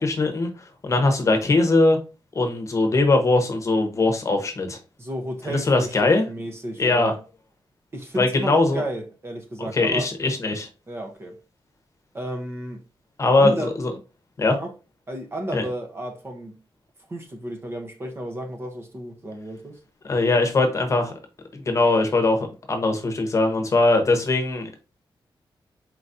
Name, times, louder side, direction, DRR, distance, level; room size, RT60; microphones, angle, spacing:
voice 1, 0.0-2.0 2.3-4.8 5.5-6.2 6.8-7.1 8.2-8.8 9.6-10.7 13.2-13.9 14.4-14.6 15.5-15.6 20.0-21.1 21.5-24.8, left 2 dB, 35° left, 1.0 m, -21 dB
voice 2, 5.0-7.2 7.9-10.1 10.9-11.4 12.1-12.8 13.3-13.7 14.5-14.7 15.1-16.6 17.1-19.8, right 1 dB, 30° right, 0.8 m, -32 dB
4.5 x 4.0 x 2.6 m
wide cardioid pair, 165°, 9 cm